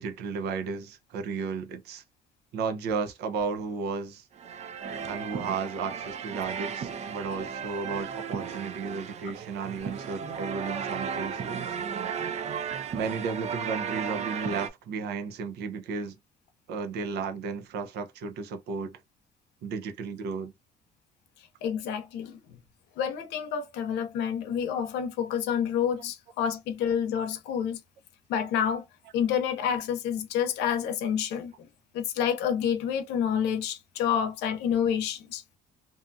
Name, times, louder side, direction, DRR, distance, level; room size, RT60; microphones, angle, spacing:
voice 1, 0.0-2.0 2.5-4.3 5.1-11.8 12.9-16.1 16.7-19.0 19.6-20.5 26.0-26.1 26.8-27.0, right 5 dB, 75° right, 0.7 m, -34 dB
sound 1, 4.4-14.7, right 7 dB, 40° right, 0.4 m, -35 dB
voice 2, 21.6-22.3 23.0-27.8 28.3-28.8 29.1-31.5 31.9-35.4, left 8 dB, 90° left, 0.7 m, -28 dB
2.6 x 2.3 x 2.6 m
cardioid pair, 110°, 17 cm